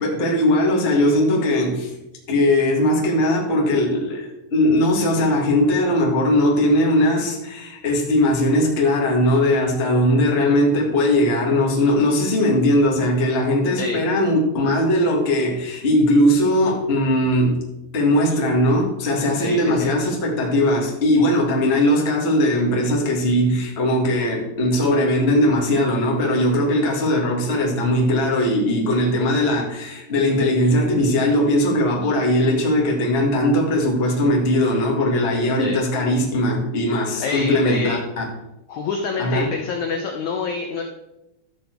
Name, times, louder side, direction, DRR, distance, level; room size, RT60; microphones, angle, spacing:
voice 1, 0.0-1.9 2.3-17.6 17.9-38.2 39.2-39.5, left 1 dB, 35° left, -2 dB, 0.9 m, -19 dB
voice 2, 19.4-19.9 35.6-35.8 37.2-38.0 38.7-40.8, left 5 dB, 80° left, 3 dB, 1.6 m, -26 dB
12.5 x 7.1 x 4.6 m, 0.93 s
omnidirectional pair, 4.6 m